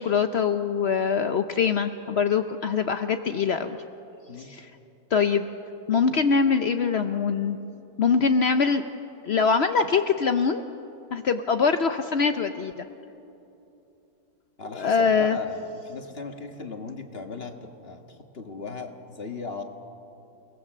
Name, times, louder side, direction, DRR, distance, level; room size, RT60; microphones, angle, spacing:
voice 1, 0.0-3.8 4.4-4.7 5.1-5.5 5.9-7.6 8.0-8.8 9.2-10.6 11.1-12.8 14.7-15.4, left 5 dB, 80° left, 8 dB, 0.5 m, -23 dB
voice 2, 14.6-19.6, left 4 dB, 35° left, 4 dB, 1.7 m, -37 dB
29.0 x 18.5 x 7.5 m, 2.8 s
omnidirectional pair, 2.1 m